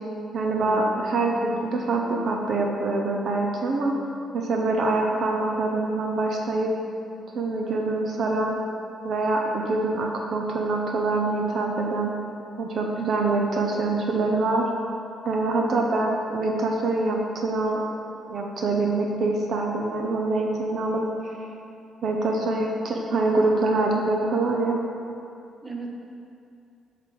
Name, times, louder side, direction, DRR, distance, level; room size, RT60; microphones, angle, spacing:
voice 1, 0.3-3.9 4.3-6.7 7.3-8.6 9.0-12.1 12.6-14.7 15.2-17.8 18.3-21.0 22.0-24.8, right 2 dB, 60° right, 1 dB, 0.7 m, -25 dB
Bass guitar, 0.6-10.2, equal, 60° left, 0.9 m, -47 dB
voice 2, 15.6-16.0 22.3-22.8 25.6-25.9, right 3 dB, 20° right, 0 dB, 0.9 m, -37 dB
7.5 x 3.4 x 6.1 m, 2.5 s
cardioid pair, 90°, 0 cm